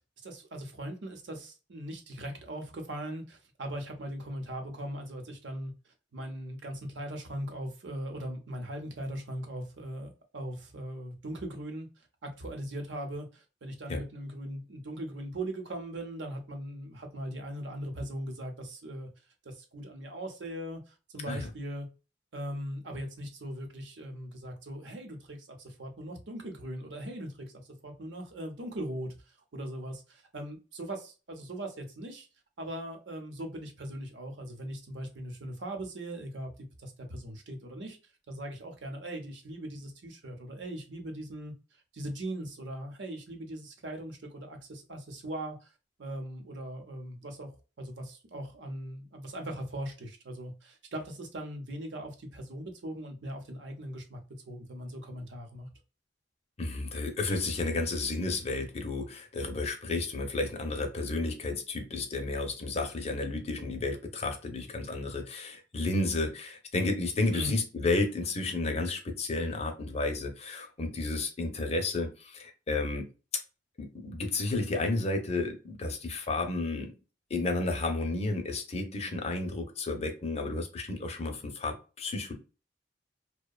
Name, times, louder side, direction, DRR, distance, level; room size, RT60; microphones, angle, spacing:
voice 1, 0.2-5.7 6.1-11.9 12.2-19.1 19.4-21.9 22.3-32.3 32.6-36.5 36.8-38.0 38.3-41.5 41.9-45.7 46.0-47.5 47.8-54.2 54.5-55.7 67.3-67.5, right 1 dB, 90° right, 0.7 m, -40 dB
voice 2, 56.6-73.0 73.8-76.9 77.3-82.3, left 2 dB, 35° left, 0.5 m, -32 dB
2.7 x 2.1 x 2.3 m
head